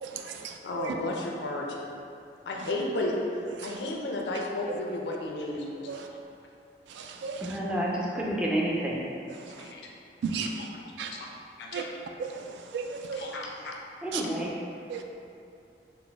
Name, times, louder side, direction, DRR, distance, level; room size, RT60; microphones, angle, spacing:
voice 1, 0.6-1.7 2.5-3.2 3.6-6.2 9.5-9.9 10.5-10.7 11.1-11.3 11.6-11.9 13.1-13.7 14.1-14.3, left 2 dB, 80° left, -1 dB, 0.5 m, -33 dB
voice 2, 7.4-9.0 13.6-13.7 14.0-14.5, right 1 dB, 5° right, -5 dB, 0.4 m, -29 dB
voice 3, 12.7-13.2 14.1-14.2 14.9-15.0, right 6 dB, 85° right, 4 dB, 0.3 m, -32 dB
4.0 x 2.0 x 3.3 m, 2.5 s
head